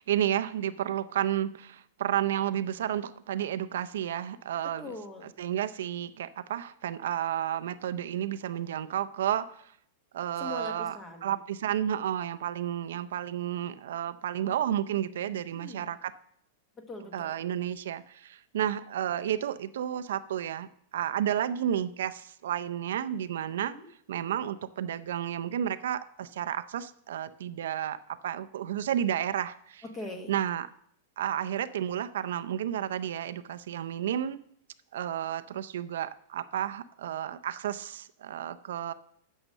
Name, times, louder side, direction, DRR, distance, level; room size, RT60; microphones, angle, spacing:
voice 1, 0.0-4.9 5.4-9.7 10.1-16.1 17.1-20.7 20.9-23.8 24.1-29.8 30.3-30.7 31.2-34.4 34.9-38.9, right 10 dB, 80° right, 12 dB, 0.5 m, -31 dB
voice 2, 4.8-5.3 10.4-11.4 15.5-15.9 16.8-17.4 23.6-23.9 29.8-30.3, left 2 dB, 15° left, 6 dB, 1.2 m, -41 dB
9.0 x 6.5 x 6.5 m, 0.68 s
supercardioid pair, 170°, 0 cm